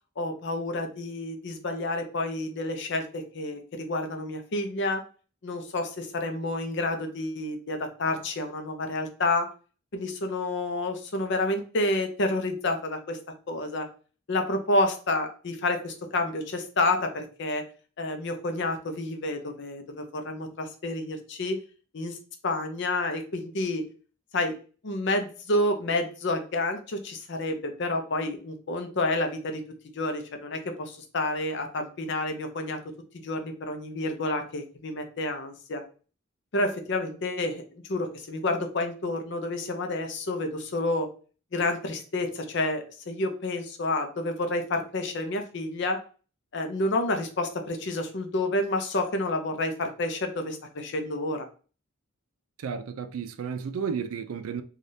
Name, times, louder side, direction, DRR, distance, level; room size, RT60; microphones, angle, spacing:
voice 1, 0.2-5.0 5.4-9.5 9.9-13.2 13.5-13.9 14.3-17.6 18.0-21.6 21.9-22.2 22.4-23.8 24.3-24.5 24.8-29.6 29.9-32.8 33.2-35.8 36.5-41.1 41.5-46.0 46.5-51.5, left 2 dB, 55° left, 0.6 m, -29 dB
voice 2, 52.6-54.6, right 6 dB, 90° right, 0.4 m, -32 dB
3.3 x 2.3 x 2.6 m
head